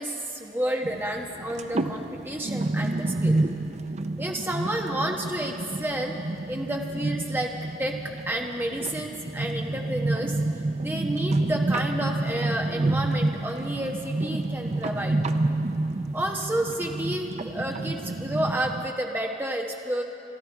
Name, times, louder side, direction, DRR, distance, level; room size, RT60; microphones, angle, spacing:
voice 1, 0.0-3.4 4.2-6.1 6.5-8.0 8.3-15.2 16.1-20.0, right 1 dB, 10° right, 1 dB, 1.1 m, -30 dB
sound 1, 0.8-18.9, right 2 dB, 35° right, 0.5 m, -29 dB
26.0 x 11.0 x 4.6 m, 2.7 s
head